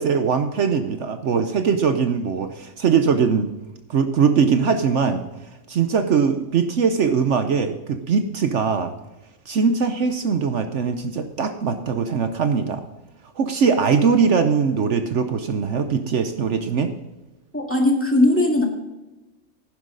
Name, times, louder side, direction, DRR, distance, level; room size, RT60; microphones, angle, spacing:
voice 1, 0.0-3.5 3.9-5.3 5.7-8.9 9.5-12.8 13.4-16.9, right 6 dB, 60° right, 8 dB, 1.1 m, -21 dB
voice 2, 17.5-18.6, left 1 dB, 10° left, 1 dB, 1.9 m, -18 dB
11.5 x 10.5 x 3.9 m, 1.1 s
omnidirectional pair, 1.5 m